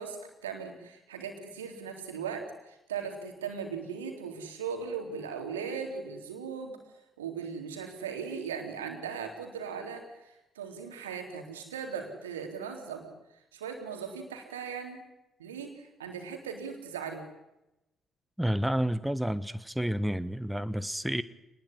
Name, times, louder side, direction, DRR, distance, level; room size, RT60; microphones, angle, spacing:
voice 1, 0.0-6.8 7.2-13.1 13.5-15.0 15.4-17.3, right 6 dB, 80° right, 4 dB, 3.7 m, -38 dB
voice 2, 18.4-21.2, equal, 5° right, 14 dB, 1.3 m, -30 dB
27.0 x 20.0 x 9.9 m, 0.94 s
figure-of-eight pair, 40°, 0 cm